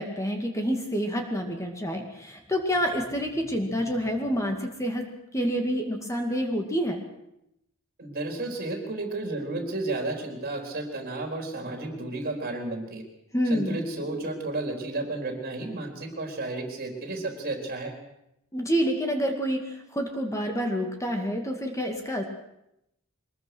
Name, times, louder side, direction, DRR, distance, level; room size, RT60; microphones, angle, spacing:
voice 1, 0.0-5.1 5.3-7.0 13.3-13.8 18.5-19.6 19.9-22.2, equal, 15° left, 3 dB, 2.2 m, -28 dB
voice 2, 8.0-13.0 13.5-17.9, right 2 dB, 45° right, 2 dB, 4.2 m, -32 dB
23.0 x 21.0 x 6.2 m, 0.82 s
head